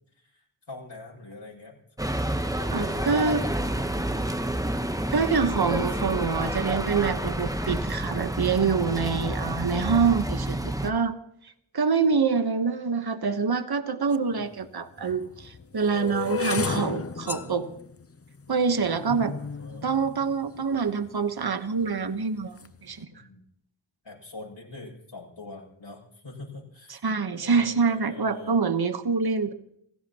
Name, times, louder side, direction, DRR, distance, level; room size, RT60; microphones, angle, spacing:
voice 1, 0.2-1.8 2.1-3.9 4.1-4.2 5.9-6.0 18.7-19.9 23.1-23.4 24.0-28.6, left 2 dB, 65° left, -3 dB, 7.0 m, -44 dB
sound 1, 2.0-10.9, right 1 dB, 5° right, 1.0 m, -29 dB
voice 2, 2.7-3.4 5.1-11.1 11.7-17.7 18.5-19.4 19.8-22.6 22.8-23.1 26.9-29.5, right 5 dB, 50° right, 9 dB, 1.2 m, -26 dB
sound 2, 14.1-14.2 15.0-21.1 21.8-22.2 22.4-22.8, left 5 dB, 30° left, 0.7 m, -34 dB
29.0 x 16.0 x 3.0 m, 0.71 s
wide cardioid pair, 60°, 48 cm